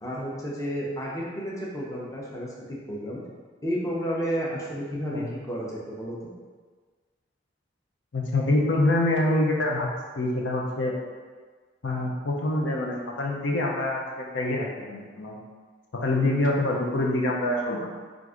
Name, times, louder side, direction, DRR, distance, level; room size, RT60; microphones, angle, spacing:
voice 1, 0.0-3.2 3.6-6.1, equal, 15° left, -5 dB, 0.7 m, -31 dB
voice 2, 8.1-9.9 10.2-10.9 11.8-15.4 15.9-17.9, left 1 dB, 70° left, -1 dB, 0.6 m, -25 dB
4.6 x 2.5 x 3.7 m, 1.5 s
head